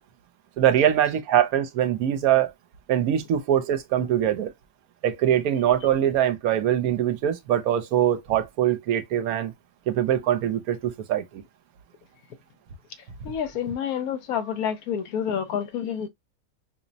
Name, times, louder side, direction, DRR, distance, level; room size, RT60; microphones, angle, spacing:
voice 1, 0.6-2.5 2.9-4.5 5.0-9.5 9.9-11.4, right 10 dB, 80° right, 1.1 m, -23 dB
voice 2, 13.2-16.1, left 8 dB, 75° left, 1.1 m, -28 dB
5.6 x 2.0 x 2.6 m
omnidirectional pair, 1.6 m